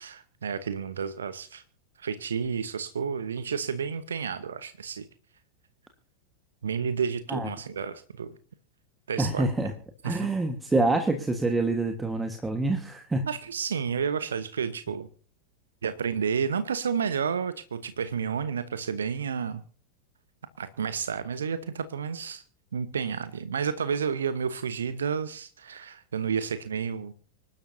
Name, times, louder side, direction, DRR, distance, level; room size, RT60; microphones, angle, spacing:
voice 1, 0.0-1.6 2.0-5.1 6.6-8.4 9.1-9.5 10.0-10.3 13.3-15.1 15.8-19.6 20.6-22.4 22.7-27.1, right 6 dB, 70° right, 13 dB, 1.0 m, -31 dB
voice 2, 9.2-9.7 10.0-13.3, right 2 dB, 10° right, 6 dB, 1.5 m, -26 dB
26.0 x 12.0 x 2.7 m, 0.41 s
figure-of-eight pair, 90°, 0 cm